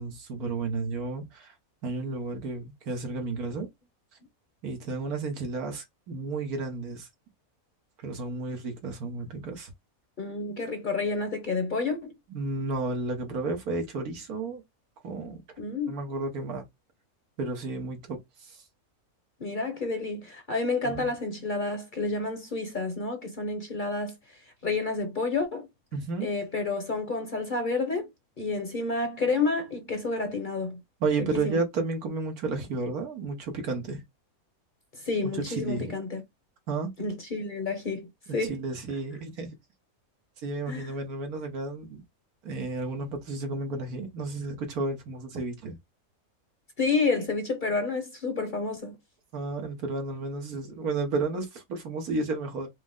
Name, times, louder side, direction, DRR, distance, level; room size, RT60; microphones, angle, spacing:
voice 1, 0.0-1.5 1.8-3.7 4.6-7.1 8.0-9.7 12.3-14.6 15.0-15.4 15.9-16.6 17.4-18.6 20.8-21.1 25.9-26.3 31.0-34.0 35.3-35.9 36.7-36.9 38.3-39.5 40.4-42.0 42.4-45.8 49.3-52.7, right 3 dB, 80° right, 1.6 m, -32 dB
voice 2, 10.2-12.1 15.6-16.0 19.4-24.1 24.6-25.7 26.2-28.1 28.4-30.8 31.3-31.6 35.0-36.2 37.0-38.6 40.7-40.9 46.8-49.0, left 3 dB, 40° left, 0.9 m, -29 dB
5.0 x 2.1 x 3.6 m
omnidirectional pair, 1.5 m